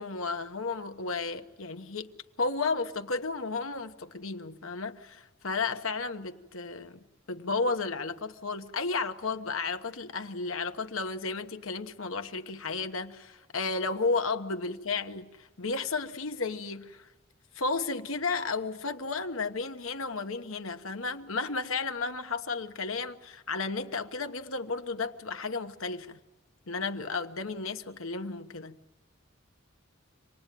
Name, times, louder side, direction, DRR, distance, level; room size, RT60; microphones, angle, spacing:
voice 1, 0.0-2.1 2.4-7.0 7.3-17.1 17.5-26.2 26.7-28.8, left 4 dB, 75° left, 1.3 m, -33 dB
26.0 x 19.5 x 9.3 m
head